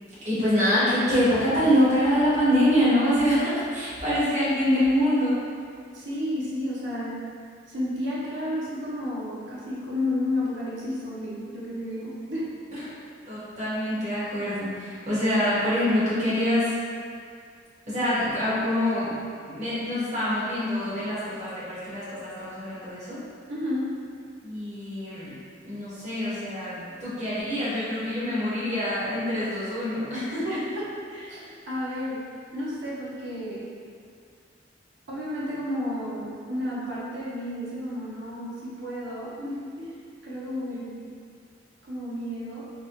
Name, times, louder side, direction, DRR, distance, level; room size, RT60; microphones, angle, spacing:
voice 1, 0.2-5.4 12.7-12.8 13.3-16.8 17.9-19.2 19.5-23.2 24.4-25.3 25.6-30.6, equal, 40° right, -12 dB, 1.3 m, -25 dB
voice 2, 5.9-7.2 7.7-12.5 23.5-23.9 30.4-32.2 32.5-33.7 35.1-39.9 40.2-41.1 41.8-42.6, left 1 dB, 75° right, -7 dB, 0.9 m, -32 dB
4.1 x 2.2 x 3.0 m, 2.2 s
head